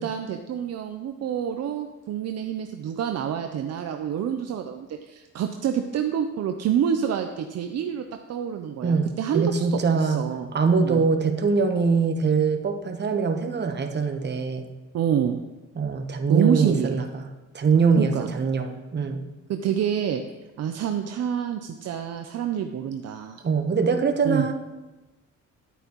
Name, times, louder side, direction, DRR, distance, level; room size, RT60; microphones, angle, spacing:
voice 1, 0.0-8.0 8.3-10.5 10.8-11.0 14.9-15.4 16.3-17.0 18.0-18.3 19.5-20.2 20.6-23.4 24.2-24.5, right 8 dB, 55° right, 6 dB, 0.6 m, -27 dB
voice 2, 8.8-10.3 10.5-14.6 15.8-17.2 17.5-19.2 23.4-24.5, right 5 dB, 35° right, 5 dB, 1.0 m, -23 dB
10.0 x 8.9 x 3.0 m, 1.1 s
cardioid pair, 90°, 30 cm